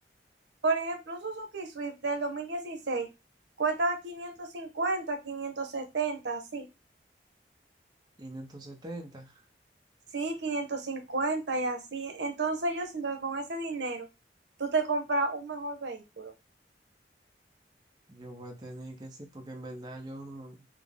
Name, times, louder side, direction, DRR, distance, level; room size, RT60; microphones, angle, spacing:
voice 1, 0.6-3.1 3.6-6.7 10.1-14.1 14.6-16.3, right 3 dB, 85° right, 0.8 m, -32 dB
voice 2, 8.2-9.4 18.1-20.7, right 1 dB, 25° right, 0.6 m, -43 dB
3.8 x 2.0 x 3.3 m
head